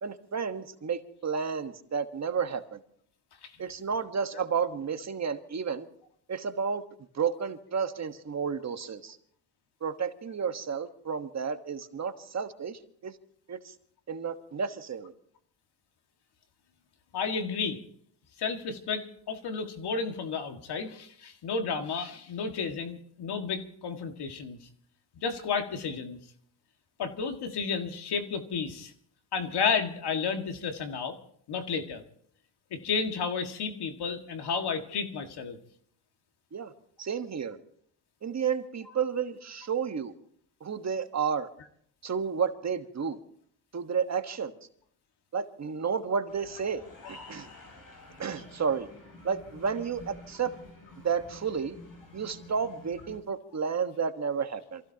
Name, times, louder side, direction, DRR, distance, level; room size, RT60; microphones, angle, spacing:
voice 1, 0.0-2.8 3.6-5.8 6.3-6.8 7.1-9.2 9.8-13.2 13.5-13.7 14.1-15.1 36.5-36.7 37.0-37.6 38.2-40.1 40.6-41.5 42.0-43.2 43.7-44.5 45.3-46.8 47.1-47.5 48.2-48.9 49.2-50.5 51.0-51.8 52.1-54.8, right 6 dB, 40° right, 7 dB, 1.4 m, -31 dB
voice 2, 17.1-17.8 18.4-24.6 25.2-26.2 27.0-28.9 29.3-31.2 31.5-32.0 32.7-35.6, left 5 dB, 70° left, 6 dB, 2.0 m, -32 dB
sound 1, 46.3-53.2, left 2 dB, 50° left, 6.8 m, -49 dB
27.0 x 15.5 x 2.9 m, 0.63 s
cardioid pair, 100°, 41 cm